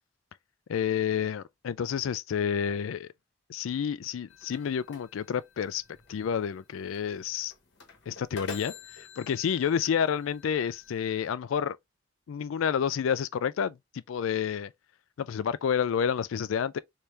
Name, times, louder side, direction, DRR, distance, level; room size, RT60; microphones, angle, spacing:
voice 1, 0.7-3.1 3.5-5.8 6.1-7.5 8.1-11.8 12.3-14.7 15.2-16.8, left 7 dB, 80° left, 0.3 m, -29 dB
sound 1, 4.3-11.3, left 4 dB, 60° left, 1.0 m, -47 dB
3.4 x 2.7 x 3.1 m
head